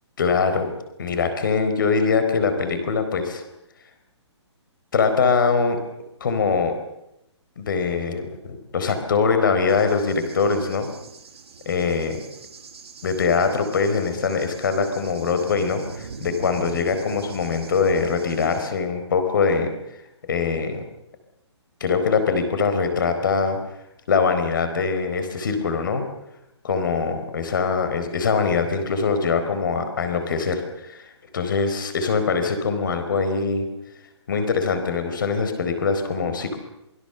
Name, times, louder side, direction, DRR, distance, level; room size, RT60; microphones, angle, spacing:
voice 1, 0.2-0.7 1.0-3.4 4.9-5.8 6.2-6.8 7.6-10.9 11.7-12.2 13.0-19.7 20.3-20.8 21.8-23.6 24.1-26.0 26.6-33.7 34.3-36.6, left 5 dB, 45° left, 8 dB, 4.3 m, -23 dB
Cricket / Thunder, 9.7-18.7, right 5 dB, 60° right, 3.5 m, -42 dB
27.0 x 22.0 x 7.0 m, 0.86 s
hypercardioid pair, 180°, 15 cm